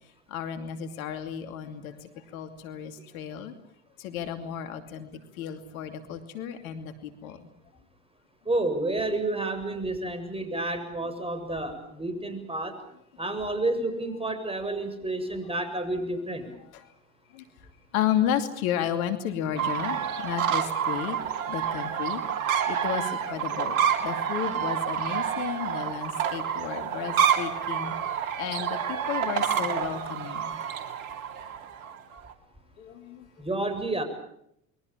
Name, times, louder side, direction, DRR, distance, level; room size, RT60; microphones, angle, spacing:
voice 1, 0.3-3.5 4.0-7.5 16.7-16.9 17.3-17.4 17.9-21.2 21.5-22.2 22.6-30.6 32.8-33.3, left 9 dB, 80° left, 8 dB, 2.7 m, -33 dB
voice 2, 8.5-12.8 13.2-16.5 33.4-34.0, right 2 dB, 15° right, 9 dB, 7.4 m, -30 dB
sound 1, 19.6-32.3, right 8 dB, 90° right, 2.7 m, -28 dB
29.0 x 22.5 x 7.4 m, 0.73 s
hypercardioid pair, 75°, 42 cm